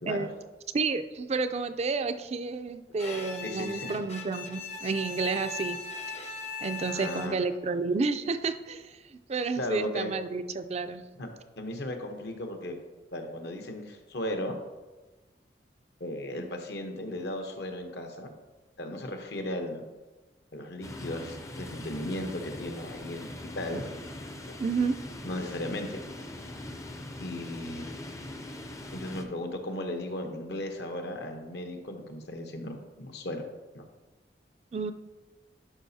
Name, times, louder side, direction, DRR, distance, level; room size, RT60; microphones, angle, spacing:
voice 1, 0.7-5.8 6.6-11.0 24.6-25.0 34.7-34.9, right 4 dB, 35° right, 10 dB, 0.4 m, -30 dB
Bowed string instrument, 3.0-7.6, left 4 dB, 40° left, 0.8 m, -39 dB
voice 2, 3.4-3.9 6.8-7.4 9.6-10.1 11.2-11.3 11.6-12.8 13.1-14.6 16.0-18.3 18.8-19.8 20.5-23.3 23.6-23.9 24.5-24.6 25.2-26.0 27.2-28.0 28.9-33.4 33.7-33.8, left 1 dB, 65° left, 4 dB, 0.9 m, -36 dB
sound 1, 20.8-29.2, left 1 dB, 20° left, 0.5 m, -41 dB
11.0 x 5.0 x 2.7 m, 1.2 s
head